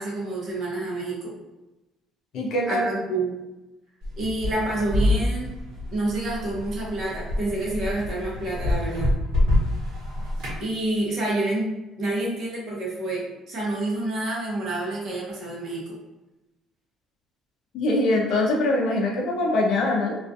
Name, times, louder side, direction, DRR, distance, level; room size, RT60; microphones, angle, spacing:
voice 1, 0.0-1.4 2.7-3.4 4.2-5.5 5.9-9.1 10.6-11.7 12.0-15.8, right 2 dB, 40° right, -5 dB, 0.8 m, -28 dB
voice 2, 2.3-2.8 17.7-20.2, left 2 dB, 50° left, -1 dB, 0.5 m, -23 dB
sound 1, 4.0-10.6, left 1 dB, 85° right, 1.0 m, -26 dB
2.3 x 2.3 x 2.5 m, 1.0 s
cardioid pair, 170°, 0 cm